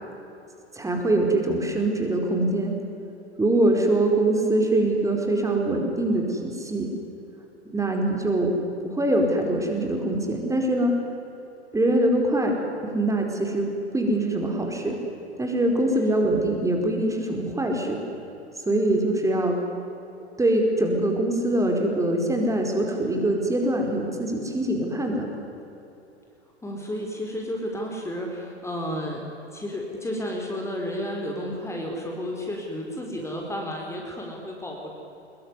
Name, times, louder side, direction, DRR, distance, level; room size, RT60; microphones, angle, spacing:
voice 1, 0.7-2.7 3.4-6.9 7.7-8.5 8.8-10.9 11.7-12.6 12.9-15.0 15.4-18.0 18.7-19.6 20.4-25.3, right 1 dB, 10° right, 2 dB, 4.7 m, -23 dB
voice 2, 26.6-29.2 29.5-34.9, equal, 10° left, 0 dB, 4.3 m, -32 dB
25.0 x 22.5 x 9.9 m, 3.0 s
figure-of-eight pair, 100°, 34 cm